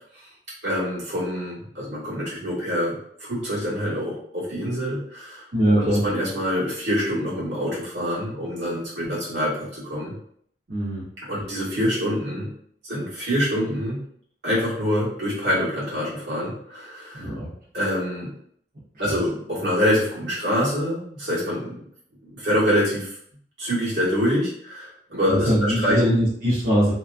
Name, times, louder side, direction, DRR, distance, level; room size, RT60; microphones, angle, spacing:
voice 1, 0.6-2.9 3.2-5.5 5.7-10.1 11.3-12.5 12.8-14.0 14.4-17.3 17.7-18.3 19.0-21.8 22.2-23.1 23.6-26.0, equal, 85° right, -7 dB, 1.3 m, -25 dB
voice 2, 5.5-6.0 10.7-11.0 17.1-17.5 19.1-19.2 25.3-26.9, equal, 50° right, -8 dB, 0.7 m, -21 dB
2.9 x 2.3 x 2.4 m, 0.65 s
head